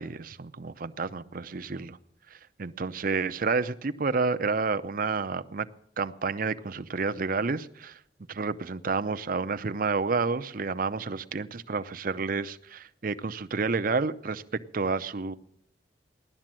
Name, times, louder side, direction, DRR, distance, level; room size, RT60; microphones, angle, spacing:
voice 1, 0.0-2.0 2.3-5.7 6.0-8.0 8.3-15.4, right 4 dB, 50° right, 11 dB, 0.7 m, -30 dB
16.5 x 11.5 x 7.5 m, 0.70 s
head